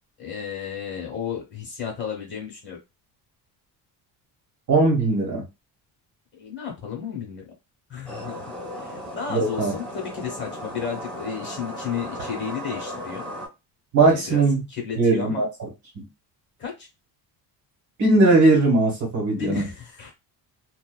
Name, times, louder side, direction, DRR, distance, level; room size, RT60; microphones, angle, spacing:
voice 1, 0.2-2.8 6.3-7.4 7.9-8.4 8.8-13.3 14.0-14.4 14.7-15.5 16.6-16.9 19.3-20.1, left 7 dB, 25° left, 0 dB, 1.1 m, -33 dB
voice 2, 4.7-5.4 9.3-9.7 13.9-14.6 15.0-15.7 18.0-19.6, right 3 dB, 40° right, 0 dB, 1.3 m, -19 dB
sound 1, 8.1-13.5, equal, ahead, 1.1 m, -36 dB
2.7 x 2.3 x 2.3 m, 0.23 s
cardioid pair, 175°, 42 cm